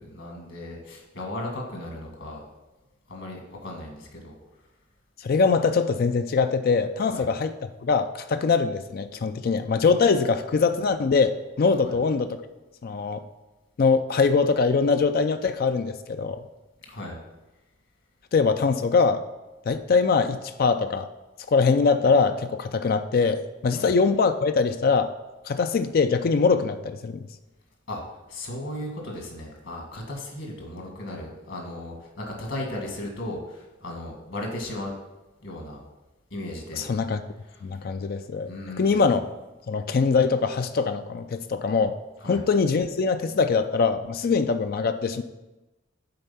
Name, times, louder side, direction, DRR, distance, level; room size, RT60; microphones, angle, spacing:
voice 1, 0.0-2.4 3.1-4.4 7.1-7.2 11.8-12.0 16.9-17.2 23.7-23.9 27.9-28.0 28.3-34.9 35.4-35.8 36.3-36.9 37.5-37.6 38.5-39.1 42.2-42.4, left 1 dB, 70° left, 0 dB, 1.8 m, -36 dB
voice 2, 5.2-7.5 7.8-12.4 12.8-13.2 13.8-16.4 18.3-19.2 19.7-21.1 21.5-25.1 25.5-27.3 36.7-37.2 37.6-38.5 38.8-39.2 39.7-42.0 42.3-45.2, left 4 dB, 50° left, 9 dB, 0.4 m, -23 dB
7.7 x 4.5 x 5.6 m, 1.1 s
head